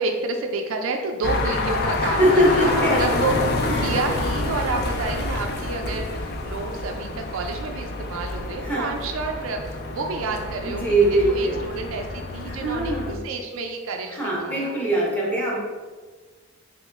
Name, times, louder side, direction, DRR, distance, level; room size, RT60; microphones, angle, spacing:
voice 1, 0.0-14.2 14.4-14.7, right 3 dB, 65° right, 3 dB, 0.4 m, -29 dB
sound 1, 1.2-13.1, left 2 dB, 45° left, 0.4 m, -28 dB
voice 2, 2.0-4.0 8.6-9.0 10.6-11.6 12.5-13.2 14.1-15.6, right 1 dB, 5° left, -4 dB, 0.7 m, -22 dB
Fire, 3.0-7.5, equal, 80° left, 1.3 m, -37 dB
3.7 x 2.1 x 3.3 m, 1.4 s
head